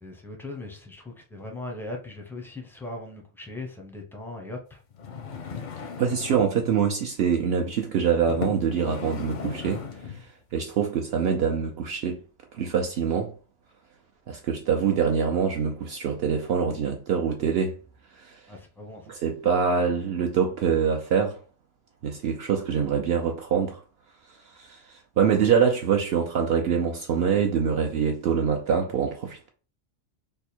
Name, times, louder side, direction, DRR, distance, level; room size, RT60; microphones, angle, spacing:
voice 1, 0.0-4.8 18.5-19.1, left 2 dB, 5° left, 0.5 m, -39 dB
sound 1, 4.9-6.6 7.4-7.6 8.3-10.3 10.9-11.0, left 6 dB, 55° left, 0.5 m, -37 dB
voice 2, 6.0-10.3 10.5-12.2 12.5-13.3 14.3-17.8 18.2-18.4 19.1-21.4 22.0-23.8 24.5-29.5, right 7 dB, 65° right, 0.7 m, -25 dB
3.4 x 2.2 x 4.3 m
omnidirectional pair, 1.3 m